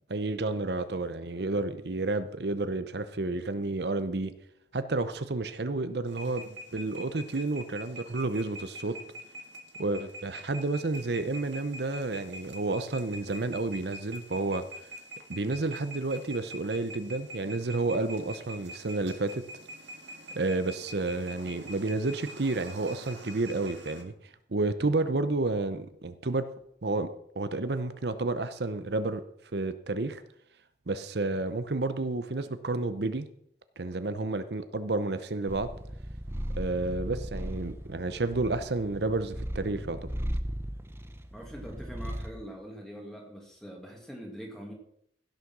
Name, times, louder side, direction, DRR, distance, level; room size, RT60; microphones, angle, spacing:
voice 1, 0.1-4.3 4.7-9.0 9.8-14.6 15.3-19.4 20.3-24.1 24.5-26.5 26.8-27.1 27.4-29.2 29.5-30.2 30.9-33.2 33.8-35.7 36.6-40.0, right 2 dB, 70° right, 11 dB, 0.8 m, -30 dB
sound 1, 6.1-24.0, equal, 85° right, 2.0 m, -45 dB
Purr, 35.5-42.4, equal, 15° right, 0.7 m, -37 dB
voice 2, 41.3-44.7, equal, 5° left, -1 dB, 2.2 m, -43 dB
16.0 x 6.8 x 6.1 m, 0.71 s
head